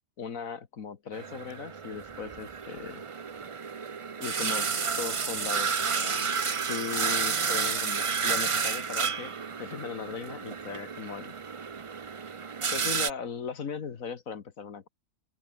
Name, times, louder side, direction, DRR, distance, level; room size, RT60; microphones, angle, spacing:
voice 1, 0.2-3.0 4.2-6.3 6.7-11.3 12.7-14.9, left 6 dB, 60° left, 1.8 m, -38 dB
sound 1, 1.1-13.1, right 5 dB, 55° right, 0.3 m, -31 dB
omnidirectional pair, 1.6 m